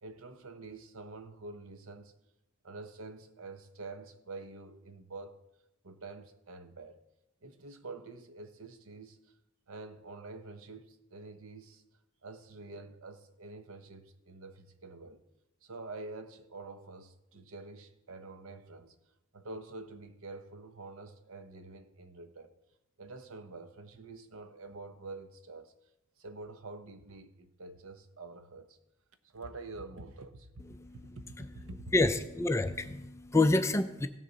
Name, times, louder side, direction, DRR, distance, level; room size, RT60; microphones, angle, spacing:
voice 1, 0.0-2.1 2.6-5.4 5.8-7.0 7.4-9.3 9.7-11.8 12.2-15.2 15.6-19.0 19.3-22.6 23.0-25.8 26.2-28.8 29.2-30.6 30.9-31.9, right 3 dB, 65° right, 0.8 m, -47 dB
voice 2, 31.9-34.1, left 2 dB, 15° left, 0.4 m, -28 dB
16.5 x 6.7 x 4.0 m
head